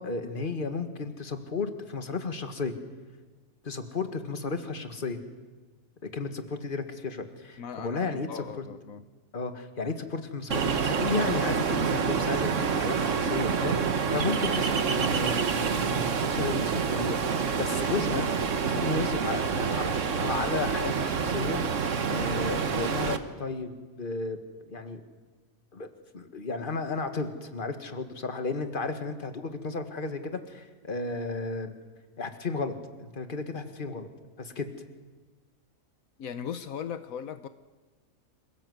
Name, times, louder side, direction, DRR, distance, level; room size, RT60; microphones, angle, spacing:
voice 1, 0.0-2.7 3.6-5.2 6.0-8.6 9.3-21.8 22.1-23.7 24.0-24.4 24.7-25.0 25.7-31.7 32.2-34.1 34.4-34.7, left 4 dB, 40° left, 7 dB, 1.8 m, -33 dB
voice 2, 7.6-9.0 36.2-37.5, left 8 dB, 80° left, 11 dB, 1.3 m, -38 dB
Ocean, 10.5-23.2, right 6 dB, 60° right, 1.5 m, -27 dB
27.0 x 16.5 x 7.9 m, 1.3 s
omnidirectional pair, 1.5 m